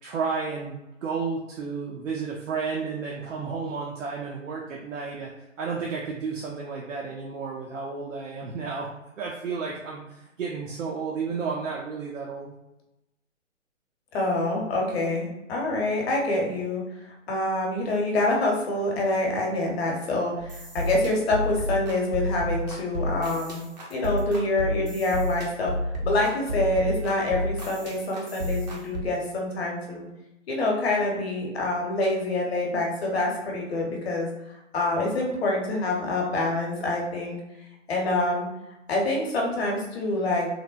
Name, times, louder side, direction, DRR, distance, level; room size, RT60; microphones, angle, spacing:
voice 1, 0.0-5.3 5.6-8.9 9.2-12.5, right 5 dB, 75° right, -2 dB, 0.6 m, -32 dB
voice 2, 14.1-23.6 23.9-25.7 26.0-30.1 30.5-34.3 34.7-37.4 37.9-38.5 38.9-40.5, left 2 dB, 55° left, -1 dB, 0.9 m, -26 dB
sound 1, 20.4-29.0, equal, 35° right, 0.5 m, -30 dB
3.2 x 2.1 x 2.4 m, 0.96 s
hypercardioid pair, 140°, 38 cm